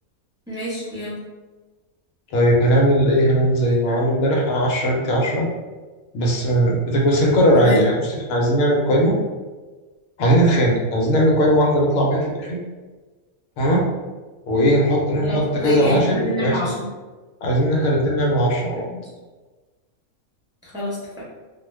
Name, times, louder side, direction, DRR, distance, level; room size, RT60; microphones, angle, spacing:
voice 1, 0.5-1.2 7.5-7.8 15.2-16.9 18.7-19.0 20.6-21.2, left 1 dB, 5° right, -9 dB, 0.8 m, -27 dB
voice 2, 2.3-5.5 6.1-9.1 10.2-12.6 13.6-13.8 14.5-16.6 17.4-18.8, equal, 85° left, -1 dB, 1.1 m, -18 dB
2.4 x 2.2 x 3.2 m, 1.3 s
omnidirectional pair, 1.5 m